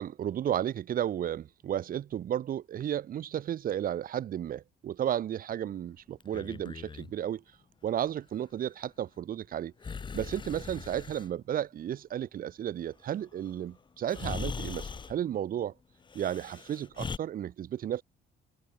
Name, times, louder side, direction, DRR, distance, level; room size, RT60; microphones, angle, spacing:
voice 1, 0.0-7.4 7.8-9.7 10.1-15.7 16.1-18.0, right 10 dB, 45° right, 0.5 m, -33 dB
Breathing, 6.2-7.1 9.8-11.3 13.5-13.6 14.1-15.2 16.1-17.2, left 5 dB, 25° left, 0.5 m, -40 dB
cardioid pair, 90°, 20 cm